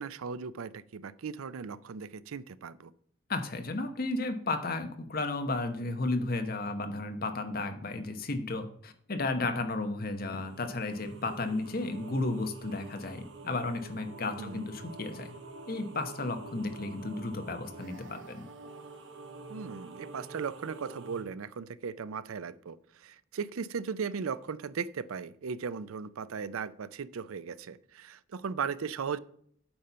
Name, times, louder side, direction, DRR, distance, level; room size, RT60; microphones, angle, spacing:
voice 1, 0.0-2.9 14.4-14.7 19.5-29.2, right 6 dB, 90° right, 17 dB, 0.5 m, -37 dB
voice 2, 3.3-15.3 15.7-18.4, left 2 dB, 45° left, 7 dB, 1.0 m, -33 dB
sound 1, 10.2-21.2, right 3 dB, 60° right, 1.2 m, -47 dB
8.6 x 4.3 x 6.7 m, 0.64 s
head